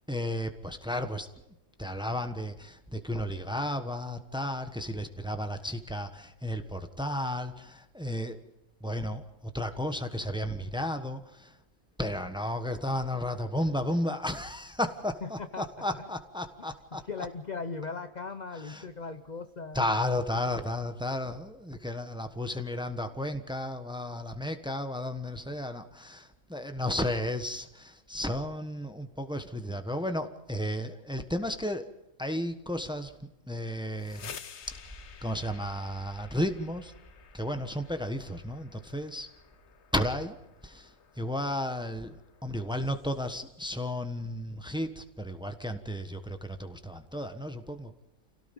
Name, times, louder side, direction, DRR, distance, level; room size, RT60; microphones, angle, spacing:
voice 1, 0.1-1.3 1.8-8.4 8.8-11.5 12.0-17.0 18.5-18.8 19.7-31.9 32.2-34.3 34.7-34.8 35.2-36.9 37.3-39.3 39.9-40.4 40.6-40.9 41.2-47.9, left 1 dB, 5° right, 7 dB, 1.1 m, -33 dB
voice 2, 15.2-15.7 16.0-16.1 17.1-19.9, left 4 dB, 40° left, 9 dB, 0.8 m, -38 dB
sound 1, 33.8-43.5, left 7 dB, 55° left, 1.1 m, -52 dB
sound 2, 34.6-44.7, left 1 dB, 10° left, 2.7 m, -55 dB
28.0 x 17.0 x 5.4 m, 0.91 s
omnidirectional pair, 1.5 m